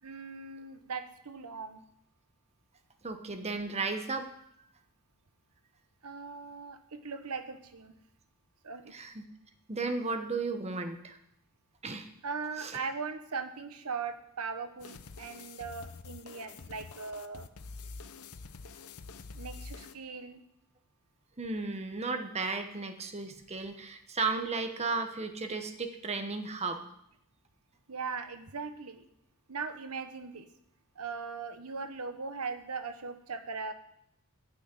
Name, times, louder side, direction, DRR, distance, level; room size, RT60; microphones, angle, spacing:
voice 1, 0.0-1.8 6.0-8.0 8.6-8.9 12.2-17.5 19.4-20.4 27.9-29.0 29.5-30.5 30.9-33.7, right 5 dB, 85° right, 9 dB, 1.1 m, -39 dB
voice 2, 3.0-4.3 8.9-9.2 9.7-11.2 11.8-12.1 12.6-12.7 21.4-26.8, right 4 dB, 30° right, 6 dB, 1.1 m, -34 dB
sound 1, 14.8-19.9, left 4 dB, 75° left, 0.8 m, -46 dB
12.5 x 6.2 x 9.6 m, 0.73 s
head